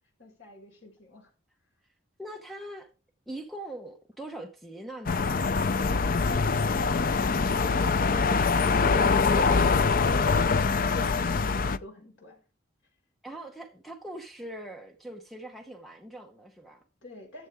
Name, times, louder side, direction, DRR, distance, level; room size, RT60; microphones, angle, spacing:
voice 1, 0.2-1.3 8.5-12.4 17.0-17.5, left 2 dB, 70° left, 5.8 m, -46 dB
voice 2, 2.2-2.9 3.3-5.5 8.3-9.8 13.2-16.8, right 1 dB, ahead, 1.0 m, -42 dB
sound 1, 5.1-11.8, left 4 dB, 45° left, 0.5 m, -24 dB
14.5 x 8.2 x 3.6 m
head